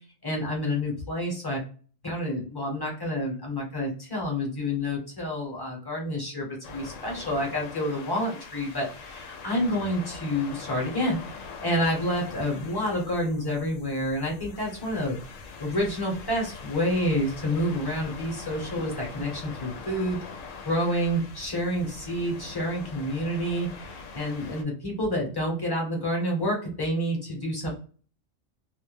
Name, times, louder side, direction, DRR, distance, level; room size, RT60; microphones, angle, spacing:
voice 1, 0.2-1.6 2.0-15.2 15.6-20.2 20.6-27.7, equal, 20° left, -1 dB, 0.8 m, -28 dB
sound 1, 6.6-24.6, left 4 dB, 85° left, 1.0 m, -42 dB
2.4 x 2.1 x 3.1 m, 0.40 s
omnidirectional pair, 1.3 m